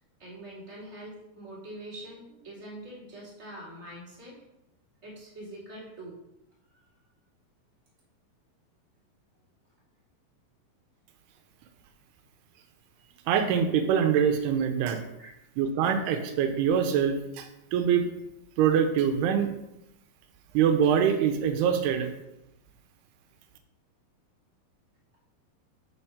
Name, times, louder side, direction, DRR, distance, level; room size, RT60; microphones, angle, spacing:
voice 1, 0.2-4.4 5.0-6.2 15.2-15.3, right 1 dB, 10° right, -7 dB, 2.4 m, -44 dB
voice 2, 13.3-15.0 15.6-18.1 18.6-19.5 20.5-22.1, right 8 dB, 90° right, 6 dB, 2.8 m, -24 dB
7.2 x 4.5 x 5.7 m, 0.87 s
omnidirectional pair, 4.5 m